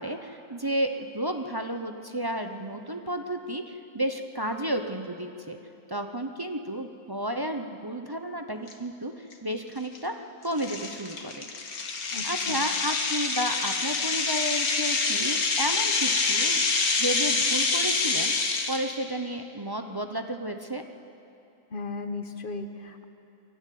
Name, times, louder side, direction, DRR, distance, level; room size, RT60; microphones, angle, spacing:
voice 1, 0.0-5.6 5.9-10.1 10.4-11.5 12.2-16.6 17.0-20.8, right 1 dB, 25° right, 5 dB, 0.6 m, -32 dB
sound 1, 8.7-8.8 9.3-9.5 10.0-10.1 10.6-18.9, left 4 dB, 85° left, 2.0 m, -26 dB
voice 2, 12.1-12.6 21.7-23.0, left 3 dB, 40° left, 7 dB, 1.1 m, -36 dB
23.0 x 13.0 x 9.3 m, 2.9 s
omnidirectional pair, 1.5 m